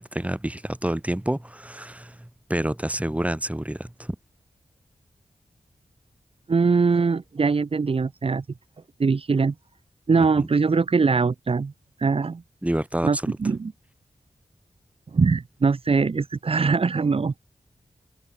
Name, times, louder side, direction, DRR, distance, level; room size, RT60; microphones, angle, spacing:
voice 1, 0.0-4.2 10.2-10.5 12.6-13.4, right 1 dB, 10° right, 4.4 m, -28 dB
voice 2, 6.5-8.4 9.0-9.5 10.1-11.7 12.0-12.4 13.0-13.7 15.1-17.4, right 4 dB, 45° right, 0.8 m, -22 dB
wide cardioid pair, 85°, 13 cm